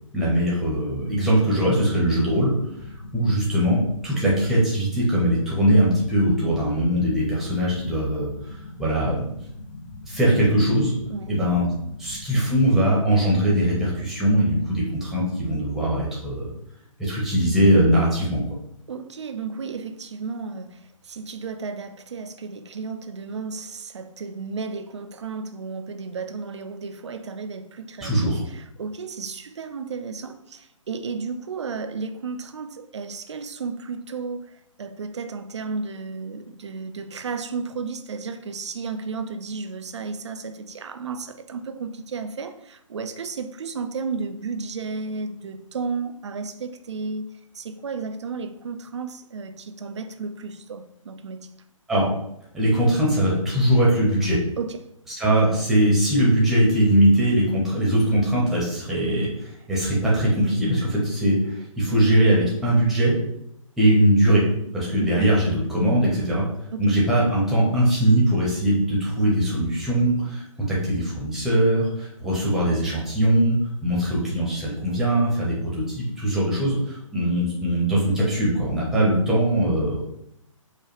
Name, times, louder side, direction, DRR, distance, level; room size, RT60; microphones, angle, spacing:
voice 1, 0.1-2.5 3.1-8.3 8.8-9.3 10.1-10.9 11.3-11.7 12.0-16.5 17.0-18.4 28.0-28.4 51.9-52.1 52.5-54.4 55.2-63.2 63.8-64.4 64.7-66.4 66.8-70.4 70.7-73.6 73.8-80.0, right 1 dB, ahead, 0.8 m, -21 dB
sound 1, 2.3-13.0, left 2 dB, 50° left, 0.8 m, -41 dB
voice 2, 18.9-47.3 47.5-51.5 54.6-54.8 65.0-65.3 66.7-66.8, right 4 dB, 55° right, 0.4 m, -33 dB
4.8 x 2.2 x 3.1 m
figure-of-eight pair, 130°, 17 cm